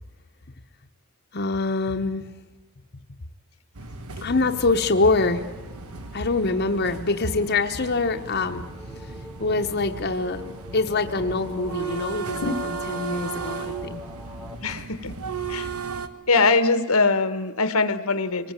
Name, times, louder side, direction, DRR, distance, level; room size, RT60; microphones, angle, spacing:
voice 1, 1.3-2.3 4.2-5.4 6.1-8.6 9.0-9.1 9.4-14.0, left 3 dB, 50° left, 4 dB, 1.0 m, -24 dB
sound 1, 3.7-16.1, right 5 dB, 85° right, 1.4 m, -36 dB
voice horn, 4.2-14.6, left 3 dB, 5° right, 1.4 m, -44 dB
voice 2, 14.6-15.1 15.5-15.7 16.3-18.5, left 3 dB, 80° left, 12 dB, 1.4 m, -22 dB
24.5 x 20.0 x 9.0 m, 1.2 s
head